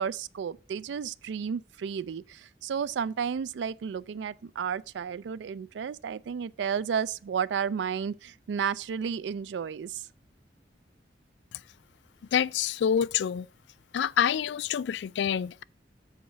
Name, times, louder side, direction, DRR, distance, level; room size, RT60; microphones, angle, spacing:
voice 1, 0.0-10.1, right 7 dB, 85° right, 0.3 m, -32 dB
voice 2, 12.3-13.5 13.9-15.6, left 8 dB, 80° left, 0.3 m, -27 dB
7.4 x 4.2 x 5.7 m
head